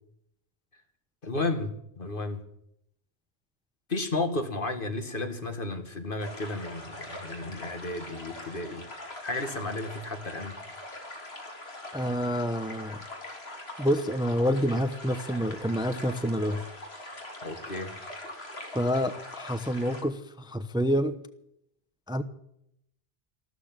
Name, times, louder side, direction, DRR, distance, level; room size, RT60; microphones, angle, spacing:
voice 1, 1.2-2.4 3.9-8.8 9.2-10.6 17.4-17.9, left 2 dB, 55° left, 7 dB, 2.1 m, -33 dB
sound 1, 6.2-20.0, left 1 dB, 70° left, 3.5 m, -43 dB
voice 2, 11.9-13.0 13.8-16.6 18.7-21.2 22.1-22.2, equal, 5° right, 10 dB, 0.9 m, -28 dB
14.5 x 13.5 x 7.5 m, 0.74 s
omnidirectional pair, 1.1 m